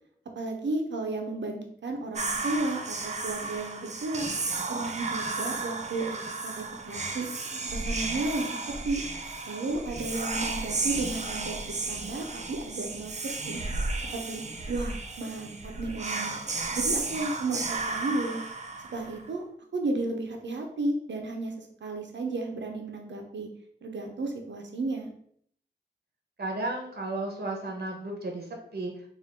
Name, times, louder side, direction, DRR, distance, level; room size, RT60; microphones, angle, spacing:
voice 1, 0.3-4.3 4.7-6.2 6.4-7.3 7.7-8.5 8.8-9.0 9.5-13.1 13.5-13.6 14.1-16.3 16.7-18.4 18.9-19.4 19.7-23.5 23.8-25.1, right 2 dB, 85° right, 3 dB, 0.6 m, -33 dB
Whispering, 2.2-19.3, right 3 dB, 40° right, 0.5 m, -33 dB
voice 2, 26.4-28.5 28.7-28.9, right 2 dB, 60° right, 1 dB, 0.9 m, -33 dB
3.6 x 2.4 x 3.6 m, 0.64 s
wide cardioid pair, 80°, 18 cm